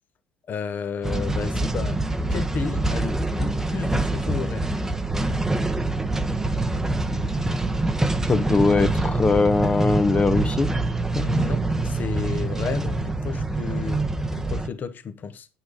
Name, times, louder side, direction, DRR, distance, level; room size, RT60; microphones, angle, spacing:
voice 1, 0.5-2.0 2.3-4.7 11.2-14.0 14.3-15.5, left 6 dB, 40° left, 1.1 m, -32 dB
sound 1, 1.0-14.7, right 2 dB, 10° right, 0.9 m, -25 dB
sound 2, 4.9-14.3, right 8 dB, 70° right, 0.9 m, -33 dB
voice 2, 8.3-10.7 11.2-11.3, left 4 dB, 25° left, 0.9 m, -21 dB
9.2 x 6.1 x 5.0 m
supercardioid pair, 80°, 5 cm